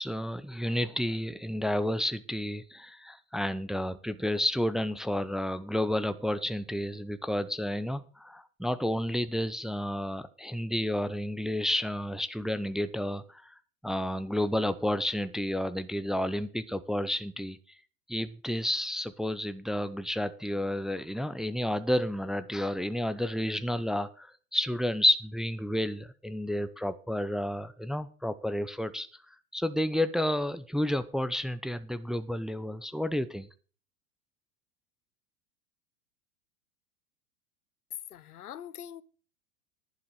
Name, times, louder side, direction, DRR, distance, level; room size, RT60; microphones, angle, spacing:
voice 1, 0.0-13.5 13.8-17.6 18.1-29.1 29.5-33.5, left 1 dB, ahead, 0.6 m, -31 dB
voice 2, 38.1-39.0, left 10 dB, 85° left, 0.8 m, -43 dB
11.0 x 7.4 x 6.5 m
hypercardioid pair, 95°, 43 cm